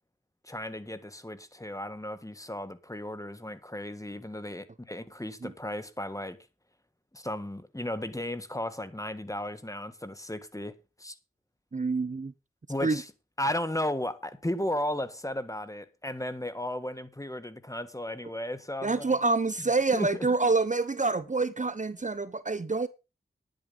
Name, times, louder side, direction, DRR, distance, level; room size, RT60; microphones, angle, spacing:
voice 1, 0.4-6.4 7.1-11.1 12.7-13.0 13.4-19.1 19.9-20.3, left 1 dB, 15° left, 1.7 m, -35 dB
voice 2, 11.7-12.3 12.8-13.0 18.8-22.9, right 3 dB, 35° right, 0.8 m, -27 dB
10.0 x 9.3 x 5.5 m
cardioid pair, 50°, 21 cm